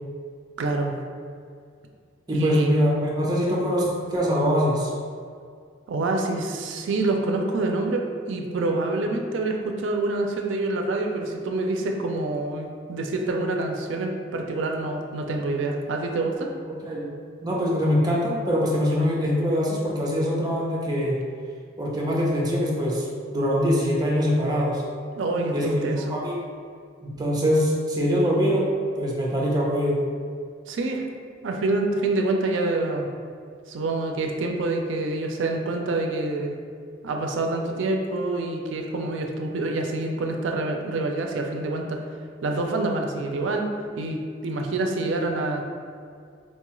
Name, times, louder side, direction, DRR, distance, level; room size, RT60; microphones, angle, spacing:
voice 1, 0.6-0.9 2.3-2.7 5.9-16.5 25.2-26.2 30.7-31.0 31.4-33.1 33.7-36.6 37.0-42.0 42.4-43.7 44.0-45.6, right 2 dB, 75° right, 3 dB, 0.4 m, -26 dB
voice 2, 2.3-4.9 16.8-17.1 17.4-21.2 21.8-24.8 25.5-26.4 27.0-28.7 29.0-30.0, equal, 20° right, -4 dB, 0.6 m, -23 dB
4.3 x 2.3 x 3.0 m, 2.2 s
head